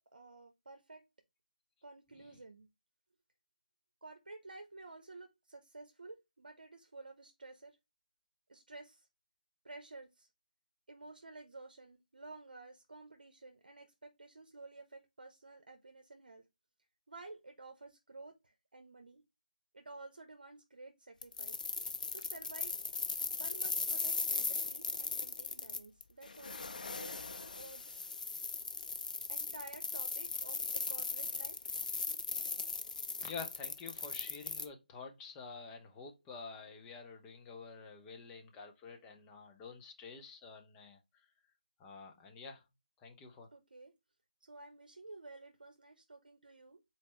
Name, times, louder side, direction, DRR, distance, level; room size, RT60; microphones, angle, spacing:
voice 1, 0.1-1.0 1.8-2.7 4.0-7.8 8.5-9.1 9.6-10.3 10.9-16.4 17.1-19.2 19.7-21.6 22.1-22.7 23.3-27.2 27.5-28.0 29.3-31.7 43.5-43.9 44.4-46.8, right 3 dB, 80° right, 0.8 m, -52 dB
sound 1, 21.2-34.7, left 4 dB, 60° left, 0.6 m, -38 dB
voice 2, 33.2-41.3 41.8-42.6 43.0-43.5, left 4 dB, 10° left, 0.5 m, -49 dB
4.2 x 3.3 x 3.1 m
figure-of-eight pair, 160°, 5 cm